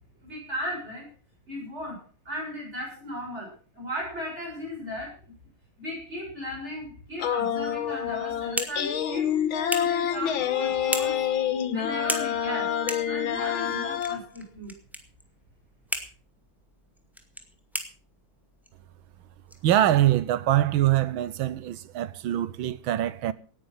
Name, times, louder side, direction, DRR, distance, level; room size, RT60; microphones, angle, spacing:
voice 1, 0.2-1.1 1.5-5.2 5.8-9.3 9.7-11.2 11.7-12.8 13.1-14.7, equal, 30° right, 7.1 m, -36 dB
female singing name of love, 7.2-14.2, left 9 dB, 85° left, 2.1 m, -27 dB
sound 1, 7.8-8.5 9.0-9.5 10.1-10.5, left 4 dB, 50° left, 3.9 m, -46 dB
sound 2, 8.0-20.4, equal, ahead, 1.9 m, -39 dB
voice 2, 19.6-23.3, right 13 dB, 85° right, 1.7 m, -23 dB
18.0 x 9.9 x 5.7 m
omnidirectional pair, 2.2 m